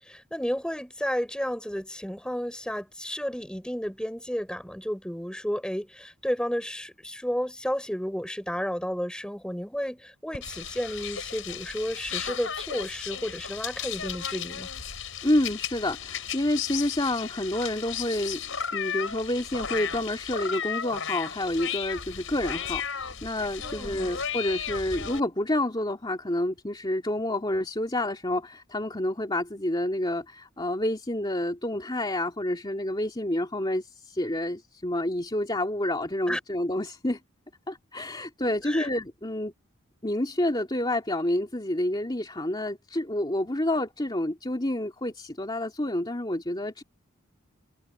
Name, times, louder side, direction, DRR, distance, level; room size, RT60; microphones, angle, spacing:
voice 1, 0.0-14.7 23.6-24.1 36.3-36.4 38.6-38.9, equal, 5° left, 7.1 m, -32 dB
sound 1, 10.3-25.2, left 8 dB, 65° left, 6.1 m, -34 dB
voice 2, 15.2-18.4 18.7-37.2 37.7-39.5 40.0-46.8, left 1 dB, 20° left, 2.5 m, -29 dB
head